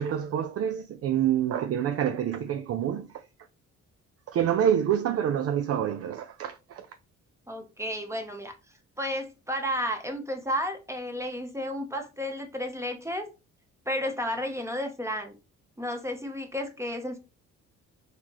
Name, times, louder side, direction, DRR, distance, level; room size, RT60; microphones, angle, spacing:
voice 1, 0.0-3.2 4.3-6.9, right 9 dB, 50° right, 0.4 m, -27 dB
voice 2, 7.5-8.5 9.0-13.3 13.9-15.3 15.8-17.2, equal, 10° right, 0.8 m, -32 dB
4.1 x 2.9 x 3.0 m
cardioid pair, 90°, 30 cm